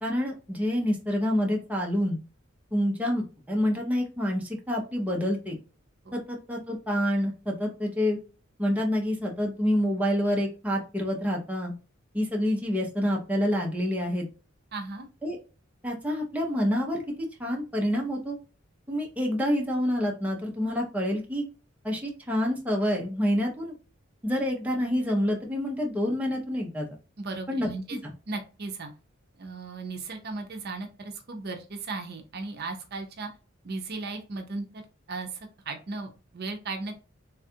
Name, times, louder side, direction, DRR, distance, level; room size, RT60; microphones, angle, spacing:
voice 1, 0.0-2.2 2.7-5.6 6.1-8.2 8.6-11.7 12.1-14.3 15.2-15.4 15.8-17.0 17.4-18.3 18.9-21.4 21.8-23.7 24.2-26.9 27.5-28.1, equal, 5° right, -2 dB, 0.6 m, -27 dB
voice 2, 14.7-15.1 27.2-28.0 28.3-28.9 29.4-33.3 33.6-34.8 35.1-35.4 35.7-37.0, right 3 dB, 50° right, 4 dB, 0.6 m, -36 dB
3.3 x 2.3 x 2.7 m, 0.33 s
head